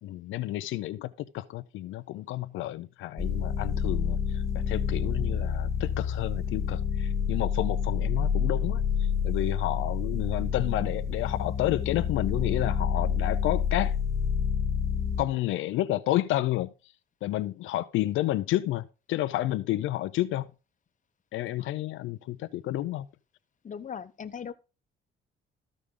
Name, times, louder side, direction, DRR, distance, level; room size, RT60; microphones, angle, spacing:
voice 1, 0.0-14.0 15.2-16.9 17.2-20.5 21.3-23.1, left 15 dB, 80° left, 0.5 m, -31 dB
sound 1, 3.2-15.2, left 7 dB, 15° left, 1.0 m, -28 dB
voice 2, 23.6-24.5, left 7 dB, 40° left, 0.8 m, -39 dB
14.0 x 5.0 x 3.7 m
cardioid pair, 90°, 20 cm